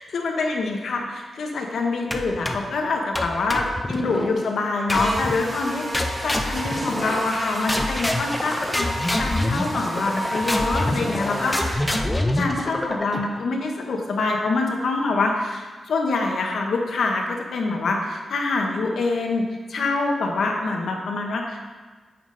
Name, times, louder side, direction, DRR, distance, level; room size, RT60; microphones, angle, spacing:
voice 1, 0.1-11.8 12.4-19.4 19.7-21.7, left 3 dB, 70° left, 1 dB, 1.0 m, -25 dB
sound 1, 2.1-2.7 3.1-4.3 4.9-5.4 5.9-7.4 7.7-13.4, left 1 dB, 10° left, 0.6 m, -26 dB
Buzz, 4.9-11.7, equal, 20° right, 2.7 m, -31 dB
9.3 x 6.0 x 3.9 m, 1.4 s
wide cardioid pair, 130°, 0 cm